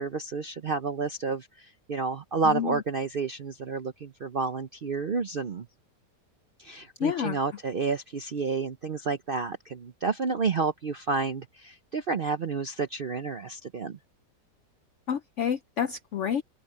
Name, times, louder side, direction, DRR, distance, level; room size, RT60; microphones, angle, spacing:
voice 1, 0.0-5.7 6.6-14.0, right 4 dB, 60° right, 0.5 m, -30 dB
voice 2, 2.4-2.8 7.0-7.4 15.1-16.4, left 8 dB, 70° left, 0.7 m, -29 dB
open air
omnidirectional pair, 1.8 m